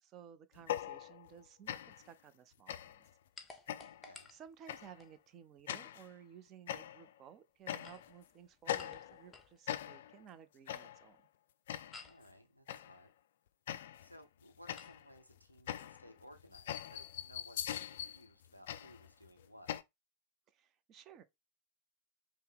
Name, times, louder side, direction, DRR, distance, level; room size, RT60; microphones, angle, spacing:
voice 1, 0.0-3.1 4.3-11.2 20.5-21.2, right 9 dB, 35° right, 0.5 m, -56 dB
sound 1, 0.6-1.4 1.7-2.1 2.7-3.1 3.7-4.1 4.7-5.0 5.7-6.1 6.7-7.2 7.7-8.2 8.7-9.3 9.7-10.2 10.7-11.1 11.7-12.1 12.7-13.0 13.7-14.2 14.7-19.8, left 11 dB, 60° left, 0.3 m, -42 dB
sound 2, 3.4-5.2 7.6-9.6 11.9-12.3 14.7-15.0, left 4 dB, 15° left, 0.7 m, -55 dB
voice 2, 3.9-4.3 12.0-13.1 14.0-19.8, equal, 90° right, 0.8 m, -59 dB
5.4 x 2.1 x 3.6 m
figure-of-eight pair, 90°, 0 cm